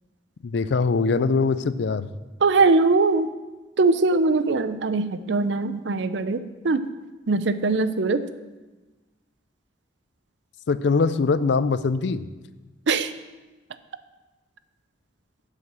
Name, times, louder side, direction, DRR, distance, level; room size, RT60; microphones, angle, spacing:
voice 1, 0.4-2.1 10.7-12.2, left 4 dB, 70° left, 15 dB, 0.4 m, -22 dB
voice 2, 2.4-3.3 3.8-6.8 7.3-8.2 12.9-13.1, right 3 dB, 70° right, 12 dB, 0.5 m, -21 dB
7.8 x 5.7 x 7.5 m, 1.2 s
head